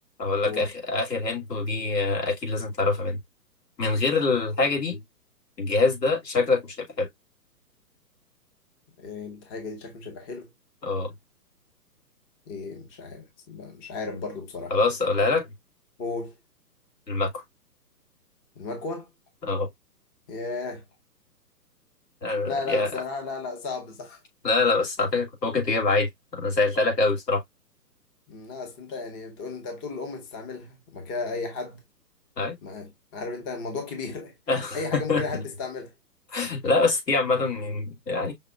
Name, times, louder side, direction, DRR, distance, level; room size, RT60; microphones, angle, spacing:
voice 1, 0.2-3.2 3.8-5.0 5.6-7.1 10.8-11.1 14.7-15.5 17.1-17.3 19.4-19.7 22.2-22.9 24.4-27.4 32.4-32.5 34.5-35.4 36.3-38.3, left 3 dB, 85° left, 3.0 m, -25 dB
voice 2, 9.0-10.5 12.5-14.7 16.0-16.3 18.6-19.1 20.3-20.8 22.5-24.2 28.3-31.8 32.6-34.3 34.7-35.9, left 4 dB, 15° left, 0.6 m, -34 dB
5.6 x 3.1 x 2.4 m
hypercardioid pair, 135°, 48 cm